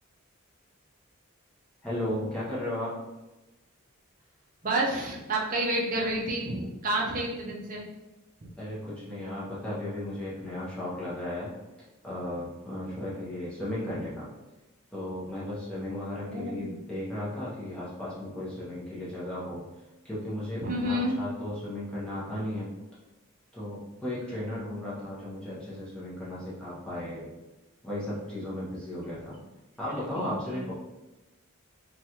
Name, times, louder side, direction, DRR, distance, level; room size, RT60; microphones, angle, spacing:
voice 1, 1.8-2.9 8.6-11.5 12.0-14.3 14.9-19.6 20.0-22.7 23.5-27.3 27.8-29.4 29.8-30.7, left 1 dB, 5° left, -9 dB, 0.7 m, -35 dB
voice 2, 4.6-7.8 16.3-16.8 20.6-21.2 30.1-30.2 30.5-30.7, right 1 dB, 40° right, -2 dB, 0.5 m, -29 dB
3.1 x 2.3 x 2.8 m, 1.1 s
head